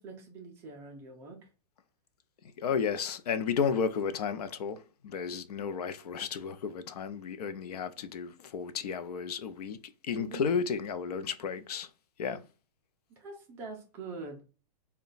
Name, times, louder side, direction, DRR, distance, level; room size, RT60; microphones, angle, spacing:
voice 1, 0.0-1.5 10.1-10.5 13.2-14.4, right 3 dB, 10° right, 0.4 m, -44 dB
voice 2, 2.6-9.8 10.0-11.9 12.2-12.4, left 6 dB, 65° left, 0.5 m, -33 dB
3.9 x 2.2 x 3.8 m
supercardioid pair, 170°, 21 cm